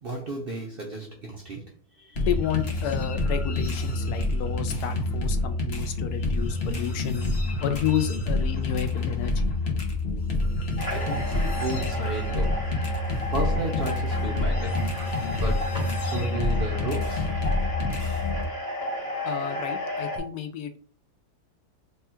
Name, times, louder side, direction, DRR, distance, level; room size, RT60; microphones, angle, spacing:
voice 1, 0.0-2.3 10.9-12.9 13.3-14.8 15.3-17.7, right 2 dB, 55° right, 0.6 m, -34 dB
voice 2, 2.2-7.2 7.6-9.5 19.2-20.8, left 9 dB, 75° left, 1.1 m, -31 dB
sound 1, 2.2-18.4, left 2 dB, 50° left, 0.9 m, -27 dB
sound 2, 10.8-20.2, left 1 dB, 25° left, 1.1 m, -33 dB
3.4 x 2.3 x 4.3 m
omnidirectional pair, 1.7 m